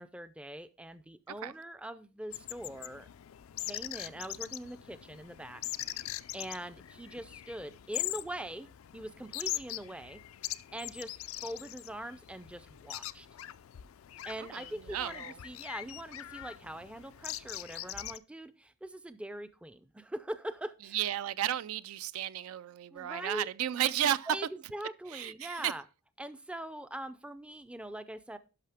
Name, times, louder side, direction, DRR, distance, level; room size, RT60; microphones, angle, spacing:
voice 1, 0.0-3.1 3.6-5.6 5.9-10.2 10.7-13.3 14.3-21.0 22.9-23.5 24.3-25.8 26.2-28.4, right 1 dB, 5° right, 0.4 m, -42 dB
sound 1, 2.3-18.2, left 15 dB, 70° left, 0.4 m, -42 dB
voice 2, 14.4-15.4 20.9-24.3 25.1-25.7, right 11 dB, 75° right, 0.3 m, -33 dB
11.5 x 5.6 x 3.4 m
head